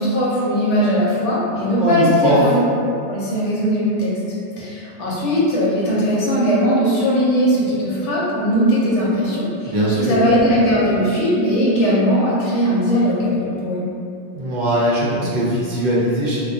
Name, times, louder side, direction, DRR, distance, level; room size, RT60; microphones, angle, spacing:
voice 1, 0.0-2.6 3.1-4.1 4.6-13.9, equal, 85° left, -7 dB, 1.0 m, -19 dB
voice 2, 1.8-2.4 9.6-10.2 14.3-16.4, right 1 dB, 60° right, -7 dB, 0.5 m, -20 dB
2.2 x 2.2 x 2.5 m, 2.5 s
omnidirectional pair, 1.2 m